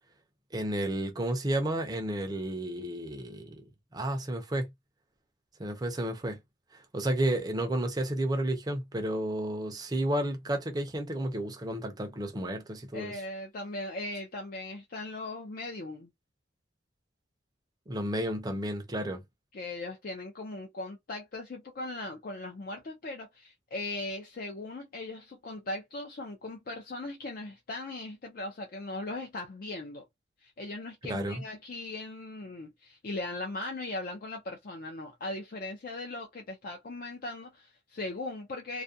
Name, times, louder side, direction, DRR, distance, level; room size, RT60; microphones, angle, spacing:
voice 1, 0.5-3.6 3.9-4.7 5.6-6.4 6.9-13.2 17.9-19.2 31.1-31.4, right 1 dB, 20° right, 0.5 m, -32 dB
voice 2, 12.9-16.1 19.5-30.1 30.4-38.8, left 2 dB, 50° left, 0.4 m, -39 dB
2.4 x 2.1 x 2.6 m
head